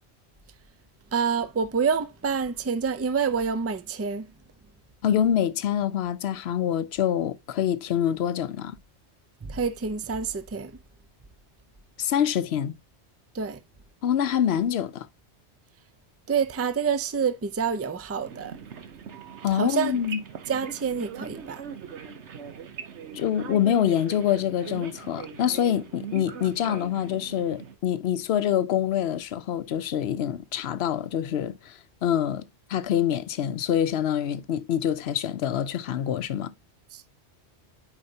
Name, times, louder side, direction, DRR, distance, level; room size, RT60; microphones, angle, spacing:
voice 1, 1.1-4.3 9.4-10.7 13.3-13.6 16.3-18.6 19.5-20.0 20.5-21.6 36.9-37.0, right 6 dB, 25° right, 0.3 m, -27 dB
voice 2, 5.0-8.8 12.0-12.8 14.0-15.1 19.4-20.2 23.1-32.4 32.7-36.5, left 10 dB, 70° left, 0.9 m, -26 dB
sound 1, 18.2-27.8, right 7 dB, 80° right, 1.2 m, -41 dB
8.6 x 5.0 x 2.7 m
omnidirectional pair, 1.1 m